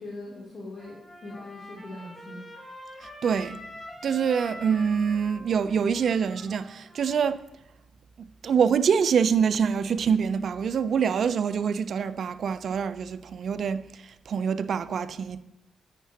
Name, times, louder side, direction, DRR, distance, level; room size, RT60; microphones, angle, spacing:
voice 1, 0.0-2.4, left 2 dB, 55° left, 2.9 m, -41 dB
Trumpet, 0.8-7.4, left 1 dB, 10° left, 3.1 m, -45 dB
voice 2, 3.2-3.6 4.0-7.4 8.2-15.4, right 7 dB, 65° right, 0.5 m, -25 dB
9.3 x 9.2 x 2.9 m
cardioid pair, 90°, 0 cm